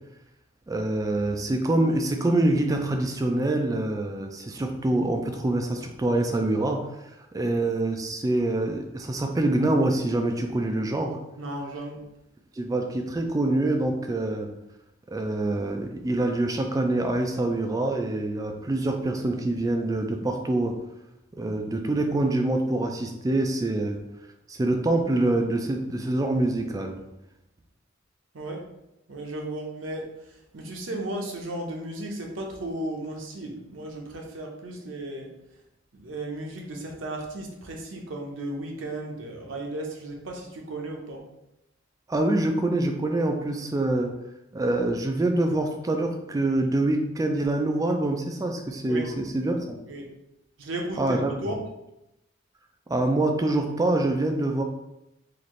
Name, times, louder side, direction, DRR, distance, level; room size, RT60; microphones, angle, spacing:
voice 1, 0.7-6.9 7.3-11.2 12.6-14.5 15.1-20.8 21.4-24.0 24.5-27.0 42.1-44.2 44.5-49.8 51.0-51.5 52.9-54.6, right 2 dB, 20° right, 4 dB, 0.3 m, -25 dB
voice 2, 11.4-12.0 28.3-28.6 29.1-30.1 30.5-35.3 35.9-41.2 48.9-49.2 49.8-50.1 50.6-51.6, right 1 dB, 75° right, 0 dB, 0.7 m, -35 dB
4.0 x 2.5 x 3.0 m, 0.88 s
head